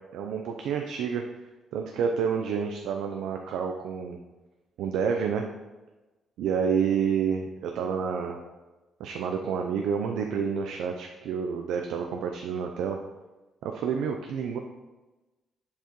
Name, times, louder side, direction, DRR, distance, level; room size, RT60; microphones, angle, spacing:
voice 1, 0.1-1.2 1.7-4.2 4.8-5.4 6.4-8.4 9.0-13.0 13.6-14.6, right 6 dB, 85° right, 3 dB, 0.5 m, -29 dB
8.0 x 7.3 x 3.0 m, 1.1 s
cardioid pair, 90°, 0 cm